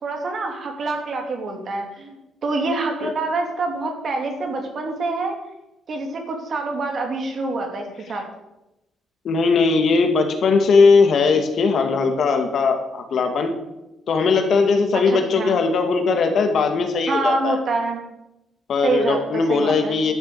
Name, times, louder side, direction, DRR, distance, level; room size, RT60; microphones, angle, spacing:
voice 1, 0.0-5.4 5.9-8.2 15.1-15.5 17.1-18.0 18.8-20.0, right 3 dB, 50° right, 3 dB, 2.9 m, -26 dB
voice 2, 9.2-13.5 14.1-17.6 18.7-20.1, left 4 dB, 60° left, 5 dB, 2.0 m, -19 dB
12.0 x 6.9 x 7.2 m, 0.94 s
cardioid pair, 90°, 0 cm